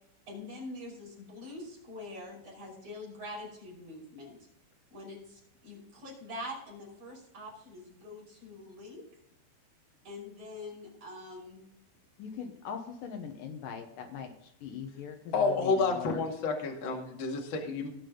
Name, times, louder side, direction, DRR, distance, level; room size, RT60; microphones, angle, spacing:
voice 1, 0.3-4.4 4.9-9.0 10.0-11.7, left 1 dB, 30° right, -2 dB, 6.0 m, -44 dB
voice 2, 12.2-16.3, left 7 dB, 70° left, 5 dB, 2.1 m, -41 dB
voice 3, 15.3-17.9, left 4 dB, 40° left, 0 dB, 1.9 m, -29 dB
19.5 x 6.9 x 3.9 m, 0.77 s
omnidirectional pair, 5.2 m